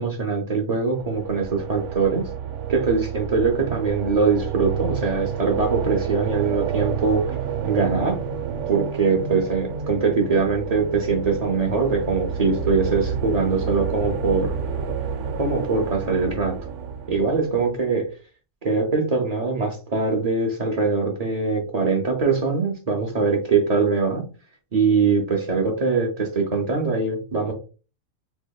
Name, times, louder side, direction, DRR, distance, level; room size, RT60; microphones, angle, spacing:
voice 1, 0.0-2.2 2.7-7.2 7.6-8.2 8.7-14.5 15.4-16.5 17.1-18.1 18.6-24.2 24.7-27.5, right 4 dB, 50° right, 1 dB, 0.5 m, -22 dB
sound 1, 0.8-17.9, right 6 dB, 65° right, 0.9 m, -30 dB
4.2 x 2.7 x 2.2 m, 0.35 s
omnidirectional pair, 1.4 m